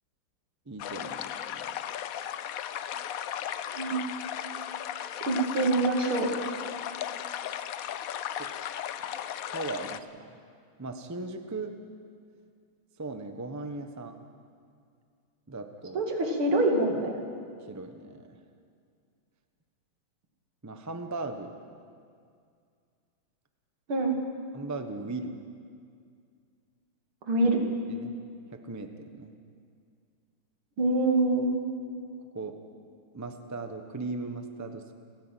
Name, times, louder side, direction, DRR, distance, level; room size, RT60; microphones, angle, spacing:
voice 1, 0.7-1.7 8.4-8.5 9.5-10.3 10.8-11.7 13.0-14.2 15.5-16.0 17.7-18.4 20.6-21.5 24.5-25.4 27.9-28.1 28.5-29.3 32.3-32.6 33.1-34.9, right 3 dB, 15° right, 6 dB, 0.6 m, -38 dB
sound 1, 0.8-10.0, left 10 dB, 90° left, 0.7 m, -36 dB
voice 2, 3.7-4.1 5.3-6.3 15.9-17.2 23.9-24.2 27.2-27.6 30.8-31.5, right 2 dB, 80° right, 1 dB, 3.3 m, -25 dB
30.0 x 10.5 x 9.0 m, 2.3 s
omnidirectional pair, 2.3 m